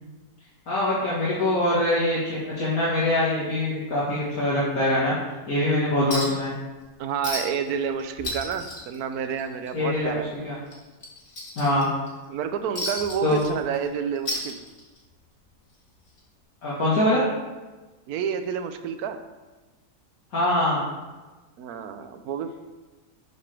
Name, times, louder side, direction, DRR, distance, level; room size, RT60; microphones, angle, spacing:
voice 1, 0.7-5.1 5.5-6.5 9.7-10.5 11.6-11.9 13.2-13.4 16.6-17.2 20.3-20.9, left 1 dB, 60° left, -8 dB, 2.0 m, -23 dB
Chink clink, 6.1-6.5 6.8-6.9 7.2-7.7 8.0-9.7 10.0-10.2 10.7-12.1 12.8-13.9 14.2-15.1 16.2-16.3, left 1 dB, 45° left, 2.4 m, -33 dB
voice 2, 7.0-10.4 12.3-14.6 18.1-19.2 21.6-22.5, right 7 dB, 70° right, 9 dB, 1.1 m, -29 dB
9.7 x 6.7 x 3.4 m, 1.2 s
omnidirectional pair, 1.8 m